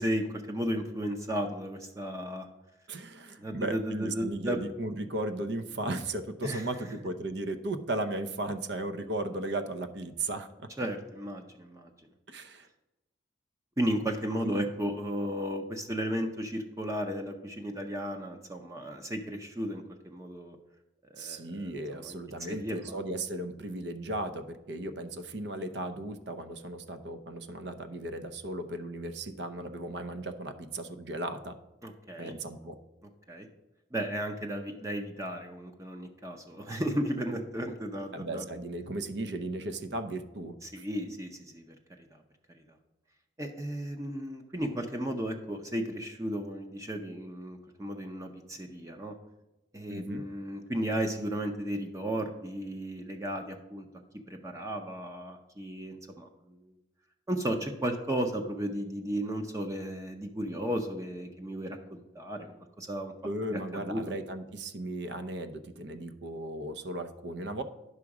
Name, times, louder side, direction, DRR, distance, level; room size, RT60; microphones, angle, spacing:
voice 1, 0.0-2.5 3.4-4.6 6.4-6.7 10.8-11.9 13.8-20.6 21.1-23.0 31.8-32.3 33.3-33.5 33.9-38.5 40.6-42.2 43.4-49.2 49.7-53.9 54.3-56.7 57.3-63.1 63.5-64.0, equal, 15° right, 4 dB, 0.6 m, -34 dB
voice 2, 2.9-10.7 12.3-12.7 14.4-14.7 21.2-31.6 32.2-32.8 38.1-40.6 49.9-50.2 63.2-67.6, right 2 dB, 65° right, 10 dB, 0.7 m, -36 dB
9.7 x 6.1 x 4.8 m, 0.97 s
head